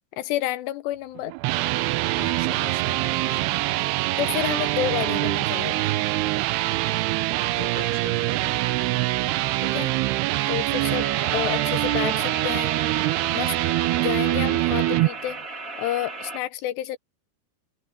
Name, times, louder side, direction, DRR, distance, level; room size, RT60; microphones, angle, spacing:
voice 1, 0.2-1.3 4.2-5.8 9.6-9.9 10.5-12.7 13.3-13.5 14.0-15.4 15.8-17.0, left 14 dB, 85° left, 3.2 m, -29 dB
sound 1, 1.2-15.1, right 18 dB, 90° right, 2.7 m, -24 dB
voice 2, 2.1-3.8 7.4-8.9, left 5 dB, 55° left, 7.5 m, -42 dB
sound 2, 10.8-16.4, right 2 dB, 25° right, 2.6 m, -35 dB
omnidirectional pair, 4.8 m